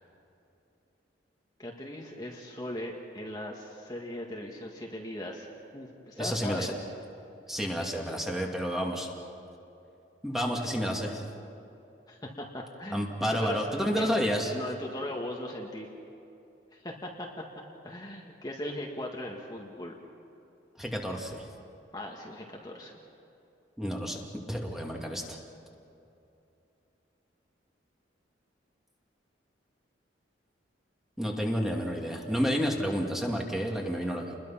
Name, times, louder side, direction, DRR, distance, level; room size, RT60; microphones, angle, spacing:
voice 1, 1.6-5.5 5.7-6.7 12.1-13.7 13.9-14.1 14.5-15.9 16.7-17.3 17.8-20.0 21.9-22.9, left 1 dB, 20° left, -1 dB, 1.8 m, -38 dB
voice 2, 6.2-6.7 7.5-9.1 10.2-11.2 12.9-14.5 20.8-21.4 23.8-24.2 24.5-25.4 31.2-34.4, equal, ahead, 0 dB, 2.3 m, -30 dB
29.5 x 21.5 x 5.9 m, 2.8 s
head